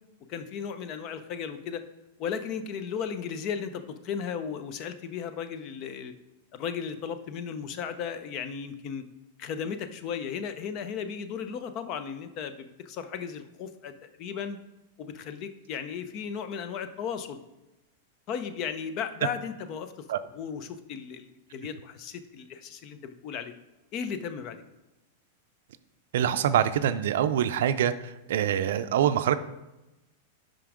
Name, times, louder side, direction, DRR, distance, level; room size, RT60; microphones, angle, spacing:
voice 1, 0.3-1.8 2.2-6.1 6.5-9.0 9.4-14.6 15.0-17.4 18.3-19.9 20.3-23.5 23.9-24.6, left 7 dB, 45° left, 10 dB, 0.6 m, -35 dB
voice 2, 26.1-27.9 28.3-29.4, right 10 dB, 70° right, 12 dB, 0.4 m, -24 dB
5.6 x 5.1 x 4.9 m, 0.99 s
hypercardioid pair, 120°, 0 cm